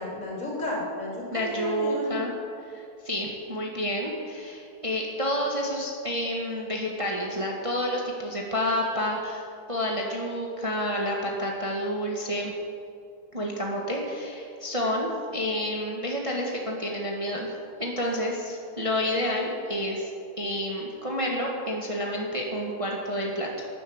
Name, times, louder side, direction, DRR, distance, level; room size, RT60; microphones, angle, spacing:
voice 1, 0.0-2.1, left 1 dB, 45° left, -3 dB, 4.1 m, -32 dB
voice 2, 1.3-2.3 2.6-9.4 9.7-12.5 13.3-17.5 17.8-20.1 20.4-23.7, equal, 20° right, -1 dB, 1.7 m, -29 dB
12.5 x 11.5 x 8.8 m, 2.6 s
omnidirectional pair, 2.0 m